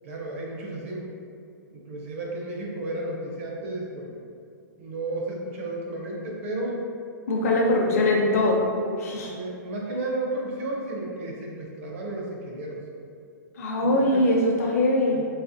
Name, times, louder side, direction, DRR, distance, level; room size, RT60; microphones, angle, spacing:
voice 1, 0.0-1.0 1.7-4.2 4.8-6.9 7.6-8.1 9.3-12.8 13.8-14.2 15.0-15.3, right 2 dB, 40° right, -2 dB, 0.6 m, -33 dB
voice 2, 7.3-8.7 9.0-9.3 13.6-15.2, left 1 dB, 50° left, -1 dB, 0.6 m, -22 dB
4.1 x 2.8 x 2.7 m, 2.3 s
hypercardioid pair, 175°, 10 cm